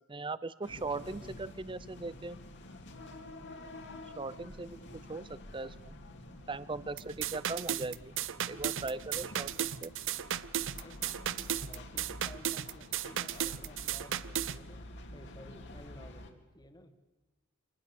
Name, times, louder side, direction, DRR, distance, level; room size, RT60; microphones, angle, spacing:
voice 1, 0.1-2.4 4.2-6.0 6.5-8.1 8.4-9.9, right 3 dB, 20° right, 17 dB, 0.6 m, -39 dB
sound 1, 0.6-16.3, left 1 dB, 55° left, 2.6 m, -49 dB
sound 2, 7.0-14.6, right 10 dB, 60° right, 0.7 m, -35 dB
voice 2, 11.7-16.9, left 1 dB, 20° left, 8 dB, 1.9 m, -54 dB
26.0 x 19.5 x 7.0 m, 1.2 s
head